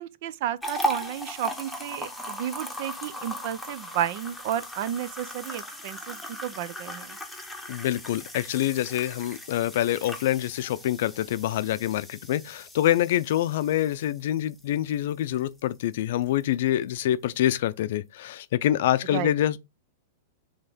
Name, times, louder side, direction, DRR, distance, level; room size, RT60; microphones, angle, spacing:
voice 1, 0.0-7.2 19.1-19.3, right 11 dB, 55° right, 0.6 m, -32 dB
sound 1, 0.6-15.8 16.2-16.4 16.9-17.0, equal, ahead, 1.1 m, -38 dB
voice 2, 7.7-19.6, left 12 dB, 65° left, 0.5 m, -26 dB
5.7 x 3.6 x 5.1 m
supercardioid pair, 145°, 0 cm